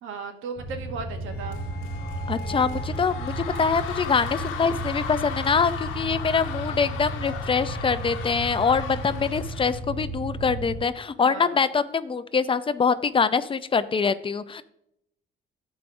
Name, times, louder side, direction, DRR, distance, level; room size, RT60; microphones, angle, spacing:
voice 1, 0.0-1.6 6.6-6.8 11.2-11.6, right 5 dB, 85° right, 6 dB, 1.0 m, -36 dB
sound 1, 0.6-10.8, right 1 dB, 45° right, 1.8 m, -34 dB
sound 2, 0.9-6.0, left 4 dB, 60° left, 0.9 m, -44 dB
sound 3, 1.5-9.8, left 7 dB, 90° left, 0.9 m, -37 dB
voice 2, 2.3-14.6, left 5 dB, 25° left, 13 dB, 0.4 m, -24 dB
13.0 x 4.8 x 2.6 m, 0.79 s
cardioid pair, 90°, 20 cm